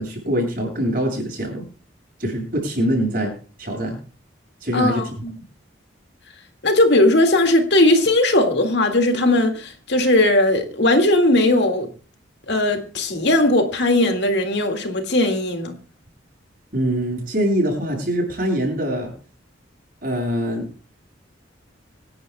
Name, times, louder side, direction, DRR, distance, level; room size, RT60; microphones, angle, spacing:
voice 1, 0.0-1.7 2.2-3.3 3.6-4.0 4.6-5.1 16.7-19.1 20.0-20.7, equal, 45° right, 7.6 m, -23 dB
voice 2, 4.7-5.3 6.6-11.9 12.5-15.8, left 1 dB, 60° left, 1.9 m, -18 dB
26.0 x 10.5 x 2.2 m
head